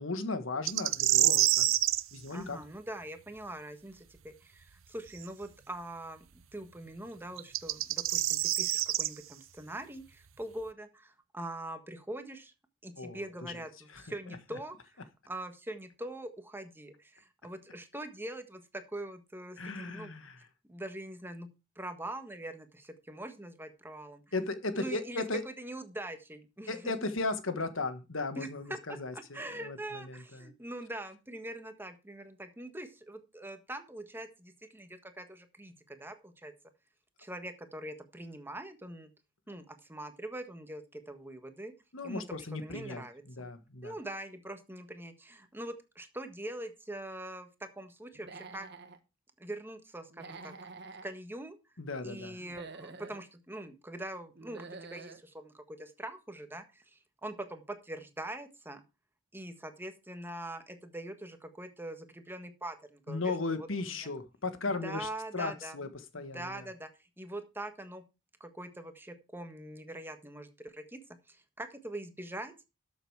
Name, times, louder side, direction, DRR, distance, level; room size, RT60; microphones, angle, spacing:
voice 1, 0.0-1.7 2.1-2.6 13.0-13.6 13.9-14.6 19.6-20.5 24.3-25.4 26.7-30.5 41.9-43.9 51.8-52.4 63.1-66.7, left 3 dB, 80° left, 10 dB, 1.5 m, -36 dB
sound 1, 0.7-2.0 5.2-5.3 7.4-9.1, right 14 dB, 90° right, 0.7 m, -26 dB
voice 2, 2.3-6.2 6.5-12.5 12.8-15.0 15.3-20.1 20.7-21.5 21.7-24.2 24.8-25.2 25.6-26.8 28.3-28.5 28.9-36.5 37.2-39.1 39.5-41.7 42.0-43.5 43.8-47.5 47.8-48.7 49.4-50.5 51.0-51.6 52.0-58.8 59.3-63.2 63.5-63.7 64.8-65.8 66.1-66.9 67.2-68.0 68.4-71.0 71.3-72.7, right 1 dB, 10° right, 7 dB, 1.5 m, -43 dB
Human voice / Animal, 48.1-49.0 50.1-51.1 52.4-53.2 54.4-55.2, right 3 dB, 55° right, 1.5 m, -47 dB
13.0 x 7.0 x 4.7 m, 0.28 s
head